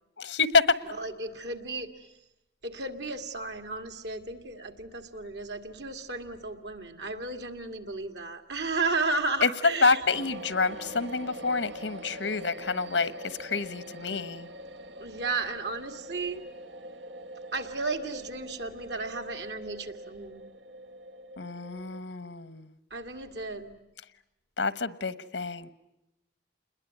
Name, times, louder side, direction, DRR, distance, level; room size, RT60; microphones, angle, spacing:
voice 1, 0.2-0.7 9.4-9.5 9.8-14.5 21.4-22.7 24.6-25.7, left 4 dB, 85° left, 15 dB, 1.2 m, -27 dB
voice 2, 0.9-1.9 2.6-10.0 15.0-16.4 17.5-20.4 22.9-23.8, right 3 dB, 70° right, 6 dB, 2.2 m, -34 dB
sound 1, 10.1-22.0, right 1 dB, 85° right, 1.2 m, -44 dB
28.5 x 21.5 x 9.4 m, 0.90 s
head